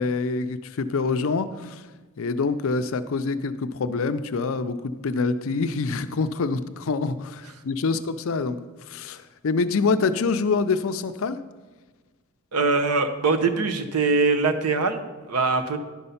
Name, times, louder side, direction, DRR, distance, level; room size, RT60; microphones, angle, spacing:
voice 1, 0.0-1.8 2.2-8.6 8.9-11.4, left 4 dB, 65° left, 11 dB, 0.5 m, -26 dB
voice 2, 12.5-15.8, right 4 dB, 90° right, 8 dB, 0.8 m, -22 dB
10.5 x 5.4 x 5.6 m, 1.3 s
head